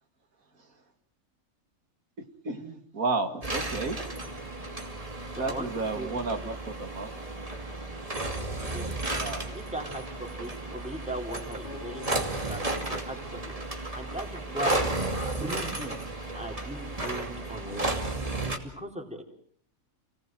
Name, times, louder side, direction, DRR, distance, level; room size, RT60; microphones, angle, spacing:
voice 1, 2.4-4.0 5.4-7.1 9.2-9.5, right 3 dB, 90° right, 7 dB, 2.8 m, -32 dB
sound 1, 3.4-18.6, right 2 dB, 25° right, 2.8 m, -33 dB
voice 2, 5.3-6.2 8.6-8.9 9.5-14.8 15.2-16.0 16.3-18.1 18.4-19.2, right 1 dB, 5° right, 2 dB, 4.3 m, -39 dB
Acoustic guitar, 11.6-16.0 16.6-16.8, left 3 dB, 35° left, 2.8 m, -49 dB
29.5 x 19.0 x 7.7 m, 0.65 s
omnidirectional pair, 1.4 m